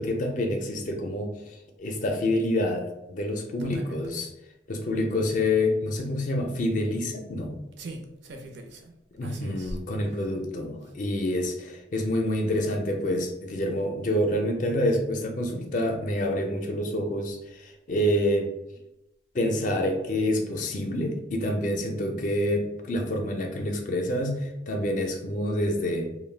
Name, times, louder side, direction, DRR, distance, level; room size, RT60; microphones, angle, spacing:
voice 1, 0.0-1.3 1.8-4.3 4.7-7.6 9.1-18.5 19.3-26.1, left 1 dB, 45° left, 4 dB, 0.4 m, -27 dB
voice 2, 3.6-4.0 7.8-8.9 9.2-9.8, right 1 dB, 80° right, 2 dB, 0.5 m, -40 dB
2.3 x 2.1 x 3.2 m, 0.91 s
head